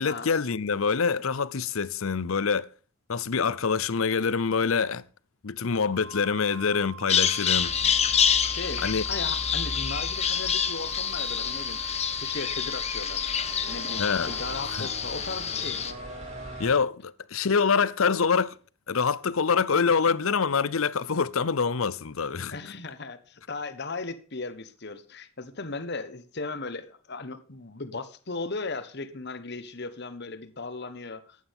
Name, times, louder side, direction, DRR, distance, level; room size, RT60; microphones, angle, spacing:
voice 1, 0.0-2.7 3.1-5.0 5.4-7.7 8.8-9.0 14.0-14.3 14.7-14.9 16.6-18.6 18.9-22.6, left 5 dB, 70° left, 0.7 m, -25 dB
Wind instrument woodwind instrument, 5.9-14.9, right 7 dB, 80° right, 2.1 m, -44 dB
Bird vocalization bird call bird song, 7.1-15.9, left 8 dB, 30° left, 0.9 m, -27 dB
sound 1, 7.4-16.8, equal, 35° right, 5.6 m, -41 dB
voice 2, 8.5-15.9 22.5-31.4, left 3 dB, 50° left, 1.2 m, -37 dB
15.0 x 11.0 x 3.6 m
head